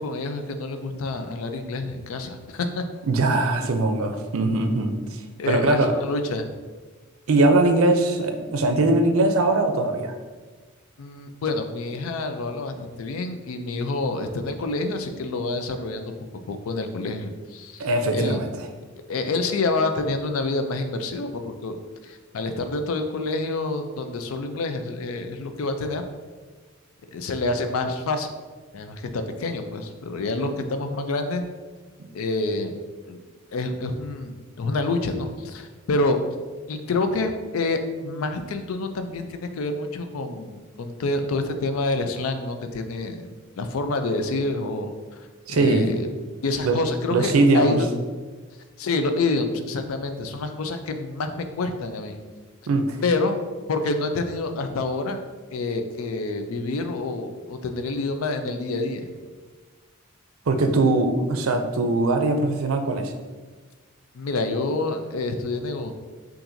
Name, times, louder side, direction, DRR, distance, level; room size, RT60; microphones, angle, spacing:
voice 1, 0.0-2.8 5.4-6.5 11.0-16.1 16.5-17.9 18.1-18.4 19.1-21.8 22.0-26.0 27.1-28.3 28.7-31.4 32.1-32.8 33.1-33.2 33.5-36.2 36.7-43.3 43.6-44.9 45.5-46.1 46.4-47.9 48.8-52.2 53.0-53.4 53.7-55.2 55.5-59.1 64.1-65.9, left 2 dB, 90° left, 7 dB, 0.4 m, -27 dB
voice 2, 3.1-5.9 7.3-10.1 17.8-18.5 32.0-32.1 45.5-45.8 46.6-46.8 47.1-47.8 52.7-53.0 60.5-63.1, right 2 dB, 85° right, 6 dB, 0.5 m, -21 dB
5.6 x 2.6 x 2.6 m, 1.4 s
head